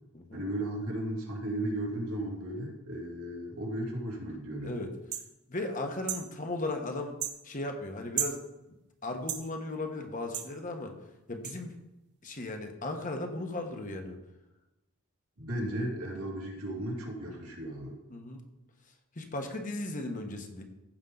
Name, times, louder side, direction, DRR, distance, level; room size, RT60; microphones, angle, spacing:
voice 1, 0.3-4.8 15.4-18.0, right 1 dB, 85° right, -2 dB, 3.0 m, -35 dB
sound 1, 5.1-5.3 6.1-6.3 7.2-7.4 8.2-8.4 9.3-9.4 10.3-10.5 11.4-11.5, right 9 dB, 50° right, 0.9 m, -33 dB
voice 2, 5.5-7.2 7.4-8.4 9.0-11.0 11.3-11.7 12.2-14.2 18.1-18.4 19.1-20.6, left 2 dB, 35° left, 4 dB, 1.2 m, -36 dB
15.0 x 5.5 x 3.9 m, 0.95 s
head